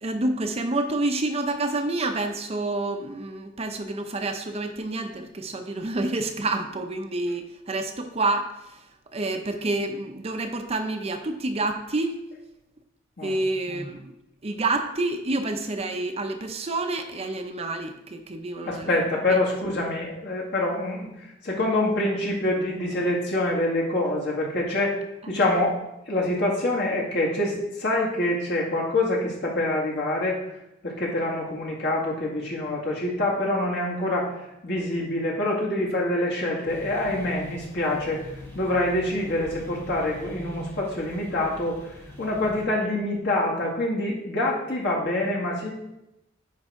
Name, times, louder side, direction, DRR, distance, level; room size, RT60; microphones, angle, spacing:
voice 1, 0.0-8.8 9.1-12.2 13.2-14.1 14.4-19.0 19.3-19.4, right 2 dB, 30° right, 6 dB, 0.6 m, -28 dB
voice 2, 18.6-21.1 21.4-25.0 25.3-25.8 26.1-30.4 30.8-34.3 34.6-38.3 38.5-41.8 42.2-45.7, left 1 dB, 60° left, -3 dB, 2.1 m, -26 dB
sound 1, 36.6-42.6, left 1 dB, 15° left, 1.9 m, -42 dB
9.5 x 5.3 x 3.6 m, 0.89 s
head